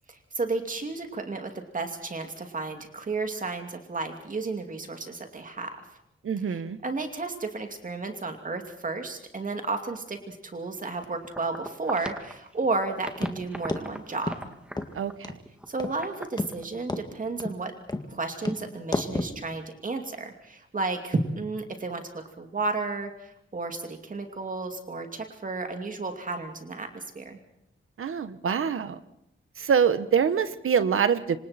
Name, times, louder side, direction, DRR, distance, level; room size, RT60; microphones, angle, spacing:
voice 1, 0.1-5.8 6.5-14.3 15.7-17.7 18.1-27.4, right 3 dB, 40° right, 4 dB, 2.6 m, -32 dB
voice 2, 6.2-6.8 14.9-15.3 28.0-29.0 29.6-31.4, right 7 dB, 80° right, 12 dB, 1.5 m, -25 dB
sound 1, 11.0-12.7 13.0-16.7, equal, 5° right, 2.2 m, -41 dB
sound 2, 13.2-13.4 13.7-13.8 14.3-14.4 14.8-14.9 15.2-15.4 15.8-16.0 16.4-16.5 16.9-17.0 17.4-17.6 17.9-18.1 18.4-18.6 18.9-19.3, left 2 dB, 20° left, 1.9 m, -30 dB
27.5 x 25.5 x 4.4 m, 0.79 s
wide cardioid pair, 160°, 21 cm